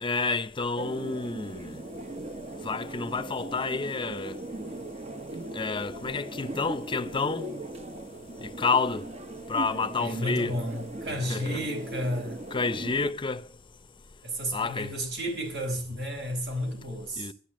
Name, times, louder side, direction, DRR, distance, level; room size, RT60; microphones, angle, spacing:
voice 1, 0.0-1.8 2.6-4.3 5.5-7.5 8.6-9.1 9.5-10.5 11.3-11.7 12.5-13.4 14.5-14.9 17.2-17.3, left 4 dB, 30° left, 0.7 m, -29 dB
sound 1, 0.8-13.1, right 1 dB, 40° right, 1.0 m, -39 dB
voice 2, 10.0-12.4 14.2-17.3, equal, 70° right, 5.1 m, -32 dB
12.0 x 9.8 x 7.4 m
head